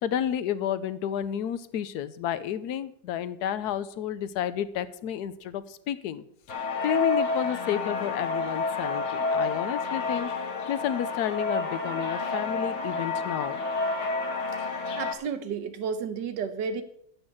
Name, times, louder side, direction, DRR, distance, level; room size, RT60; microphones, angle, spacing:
voice 1, 0.0-10.3 10.7-13.6, left 10 dB, 65° left, 14 dB, 1.2 m, -31 dB
sound 1, 6.5-15.1, left 3 dB, 40° left, 1.5 m, -29 dB
voice 2, 14.6-16.8, right 6 dB, 70° right, 10 dB, 1.6 m, -32 dB
14.0 x 5.5 x 7.2 m, 0.69 s
omnidirectional pair, 2.0 m